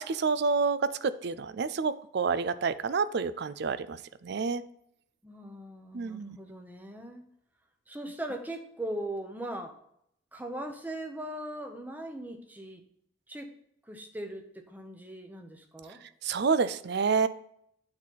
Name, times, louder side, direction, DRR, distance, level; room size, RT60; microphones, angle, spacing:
voice 1, 0.0-4.6 5.9-6.4 16.2-17.3, right 5 dB, 55° right, 14 dB, 0.4 m, -28 dB
voice 2, 5.2-7.2 7.9-9.7 10.3-12.8 13.3-13.5 13.9-16.0, right 1 dB, 10° right, 4 dB, 0.9 m, -39 dB
8.7 x 4.1 x 5.7 m, 0.73 s
head